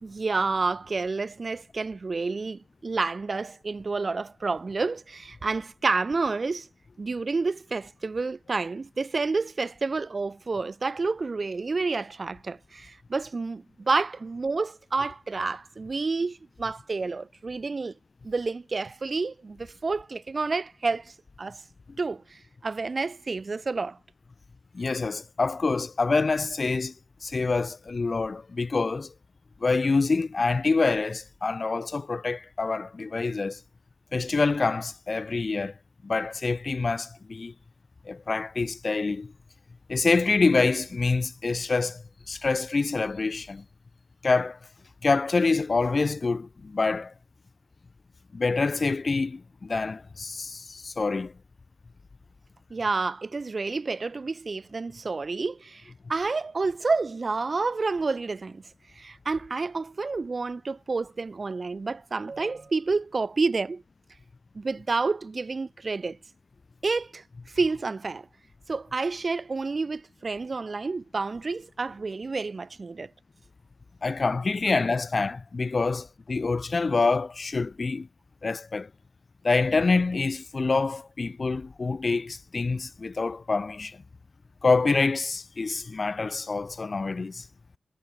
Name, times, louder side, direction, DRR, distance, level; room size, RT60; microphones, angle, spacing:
voice 1, 0.0-6.7 7.0-17.9 18.2-21.6 22.0-24.0 52.7-58.6 58.9-63.8 64.5-66.2 66.8-68.3 68.7-73.1, right 4 dB, 40° right, 1.3 m, -29 dB
voice 2, 24.7-26.9 27.2-29.1 29.6-33.6 34.1-35.7 36.0-37.5 38.1-39.3 39.9-43.6 44.2-44.6 45.0-47.1 48.3-51.3 74.0-78.1 78.4-78.9 79.4-84.0 84.6-87.5, left 3 dB, 40° left, 0.5 m, -26 dB
wide cardioid pair, 145°, 0 cm